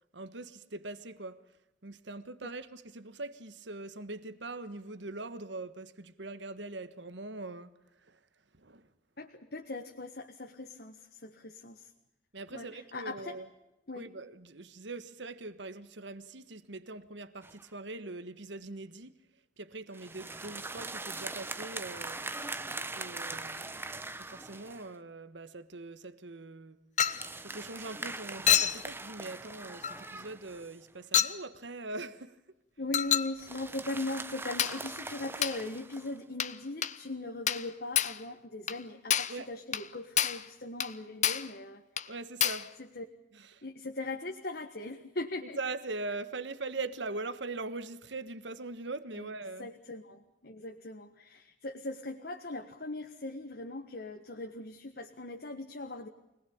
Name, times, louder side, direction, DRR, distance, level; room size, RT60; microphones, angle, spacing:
voice 1, 0.1-1.4 1.8-7.7 8.1-8.2 8.6-8.8 12.3-13.5 13.9-19.1 19.6-22.2 22.9-23.7 24.2-26.8 27.4-32.4 39.3-39.5 42.1-42.7 43.3-43.6 45.6-49.7, right 3 dB, 75° right, 1.4 m, -41 dB
voice 2, 9.2-11.9 12.5-13.4 13.9-14.1 32.8-41.8 42.8-43.0 43.6-45.6 49.1-49.3 49.6-56.1, left 2 dB, 55° left, 1.6 m, -40 dB
sound 1, 17.4-17.7 19.9-24.9 27.0-30.9 33.4-36.2, right 3 dB, 10° right, 0.9 m, -41 dB
Chink clink, 27.0-27.3 28.5-28.8 29.8-30.0 31.1-31.4 32.9-33.3 34.6-34.8 35.4-35.6 36.4-36.6 36.8-37.0 37.5-37.7 37.9-38.2 38.7-38.8 39.1-39.4 39.7-39.9 40.2-40.4 40.8-40.9 41.2-41.5 42.0-42.1 42.4-42.7, left 10 dB, 40° left, 0.9 m, -28 dB
25.0 x 19.5 x 8.6 m
head